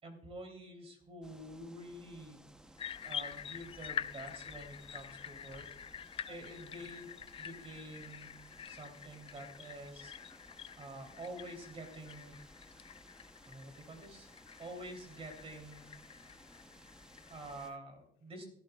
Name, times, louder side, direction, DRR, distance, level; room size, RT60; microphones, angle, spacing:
voice 1, 0.0-2.4 3.0-5.7 6.3-10.1 10.7-12.4 13.4-14.3 14.6-15.9 17.3-18.4, right 1 dB, 35° right, 4 dB, 3.1 m, -48 dB
sound 1, 1.2-17.7, right 1 dB, 5° right, 0.8 m, -59 dB
sound 2, 2.8-17.8, left 8 dB, 35° left, 0.4 m, -47 dB
voice 2, 10.3-10.9 12.8-12.9 13.5-13.7 16.2-17.3, left 8 dB, 85° left, 4 dB, 1.4 m, -75 dB
16.0 x 11.5 x 2.3 m, 0.73 s
cardioid pair, 110°, 17 cm